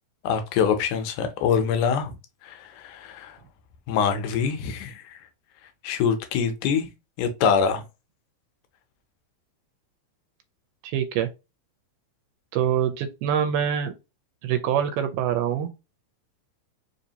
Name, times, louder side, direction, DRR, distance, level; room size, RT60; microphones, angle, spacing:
voice 1, 0.2-2.2 2.4-3.4 3.9-5.2 5.8-6.9 7.2-7.8, left 6 dB, 80° left, 2.1 m, -24 dB
voice 2, 10.8-11.3 12.5-13.9 14.4-15.7, right 9 dB, 90° right, 2.1 m, -25 dB
4.8 x 2.6 x 2.8 m
omnidirectional pair, 3.6 m